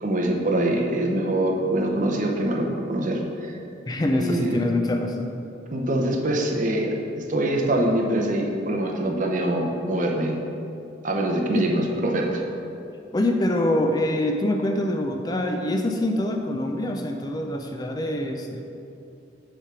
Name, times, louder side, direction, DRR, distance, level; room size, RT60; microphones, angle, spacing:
voice 1, 0.0-3.5 4.2-4.6 5.7-10.4 11.0-12.4, right 1 dB, 45° right, 0 dB, 0.8 m, -24 dB
voice 2, 3.9-5.3 11.5-11.7 13.1-18.6, left 1 dB, 20° left, 3 dB, 0.3 m, -25 dB
7.2 x 3.4 x 5.9 m, 2.7 s
head